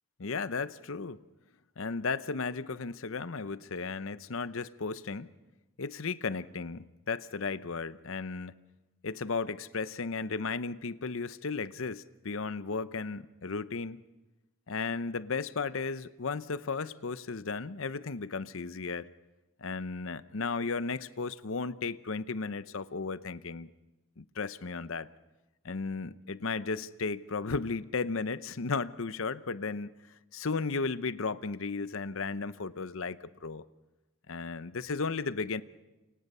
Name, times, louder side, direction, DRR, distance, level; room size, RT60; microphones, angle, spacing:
voice 1, 0.2-1.2 1.8-5.3 5.8-8.6 9.0-14.0 14.7-19.1 19.6-23.7 24.2-25.1 25.6-29.9 30.3-33.6 34.3-35.6, left 4 dB, 75° left, 15 dB, 0.7 m, -35 dB
29.0 x 26.0 x 5.5 m, 1.0 s
head